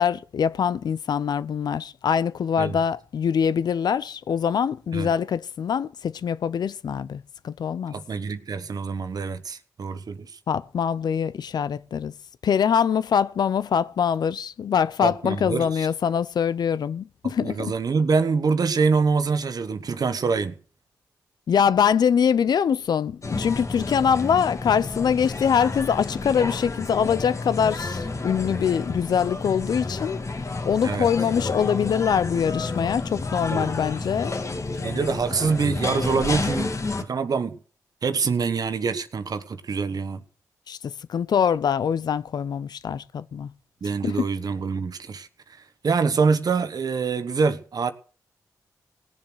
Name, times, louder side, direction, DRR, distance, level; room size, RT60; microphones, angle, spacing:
voice 1, 0.0-7.9 10.5-12.1 12.4-17.7 21.5-30.2 30.7-34.3 40.7-40.8 41.1-43.5 44.0-44.3, left 7 dB, 70° left, 0.6 m, -23 dB
voice 2, 7.9-10.4 15.0-15.9 17.4-20.6 30.8-31.1 33.5-33.7 34.8-36.7 37.0-37.6 38.0-40.2 43.8-45.3 45.8-47.9, right 5 dB, 60° right, 1.2 m, -25 dB
sound 1, 23.2-37.0, left 3 dB, 45° left, 2.1 m, -30 dB
18.0 x 7.2 x 6.4 m
supercardioid pair, 40°, 7 cm